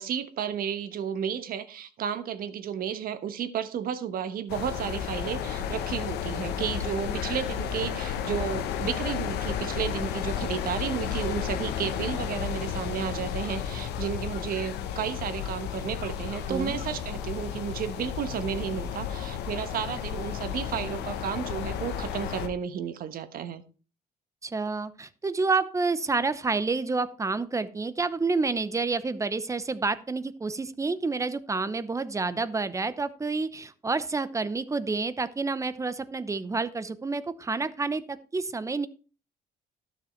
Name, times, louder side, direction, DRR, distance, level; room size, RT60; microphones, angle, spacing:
voice 1, 0.0-23.6, right 8 dB, 60° right, 12 dB, 1.2 m, -32 dB
sound 1, 4.5-22.5, left 9 dB, 85° left, 1.2 m, -33 dB
voice 2, 24.4-38.9, right 3 dB, 20° right, 15 dB, 0.8 m, -29 dB
12.0 x 7.2 x 4.4 m, 0.36 s
cardioid pair, 110°, 17 cm